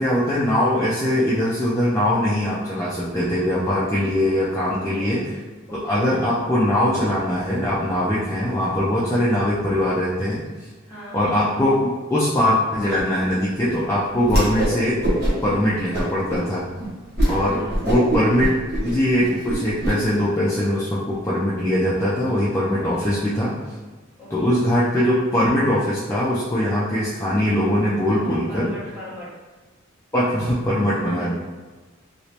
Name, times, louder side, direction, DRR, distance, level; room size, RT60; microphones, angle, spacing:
voice 1, 0.0-5.3 5.7-10.4 11.1-15.0 15.4-16.6 17.2-18.5 18.8-23.5 24.3-28.7 30.1-31.4, left 1 dB, 15° left, -8 dB, 0.4 m, -21 dB
voice 2, 4.7-5.1 5.7-6.1 9.1-9.3 10.9-11.2 17.2-17.8 22.7-23.1 24.2-24.6 28.1-29.3 30.8-31.4, right 1 dB, 10° right, -9 dB, 1.0 m, -40 dB
Whoosh swoosh swish, 14.2-14.7 15.0-15.5 15.9-16.4 16.8-16.9 17.2-17.4 17.7-19.9, right 1 dB, 50° right, 1.1 m, -22 dB
3.1 x 2.9 x 2.8 m, 1.3 s
head